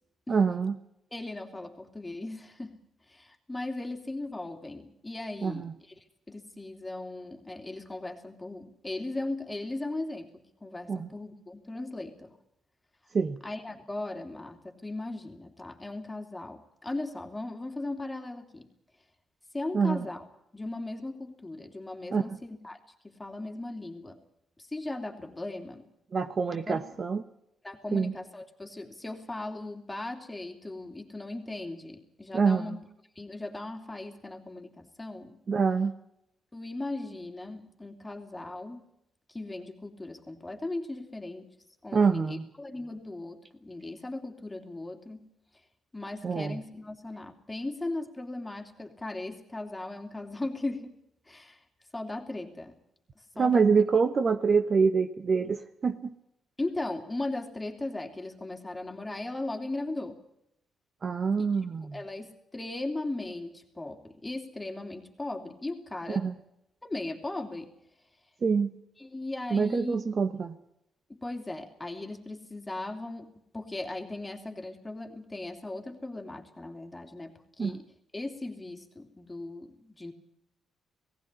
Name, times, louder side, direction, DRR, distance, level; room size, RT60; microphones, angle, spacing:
voice 1, 0.3-0.8 5.4-5.7 10.9-11.1 13.1-13.4 19.7-20.0 22.1-22.4 26.1-27.2 27.9-28.1 32.3-32.8 35.5-35.9 41.9-42.5 46.2-46.6 53.4-56.1 61.0-62.0 66.1-66.3 68.4-68.7 69.5-70.6 77.6-77.7, right 5 dB, 40° right, 10 dB, 1.0 m, -26 dB
voice 2, 1.1-2.8 3.1-5.6 6.3-10.3 10.6-12.3 13.4-18.7 19.5-20.3 20.5-22.8 23.0-24.2 24.6-25.8 26.7-26.8 27.6-32.8 33.1-35.4 36.5-38.9 39.3-41.5 41.8-45.3 45.9-51.0 51.3-51.6 51.9-52.7 53.4-53.7 56.6-60.2 61.4-61.5 61.8-66.3 66.8-67.7 69.0-70.0 71.1-77.8 78.1-80.1, left 2 dB, 15° left, 3 dB, 3.1 m, -38 dB
18.0 x 16.0 x 9.8 m, 0.81 s
cardioid pair, 90°, 0 cm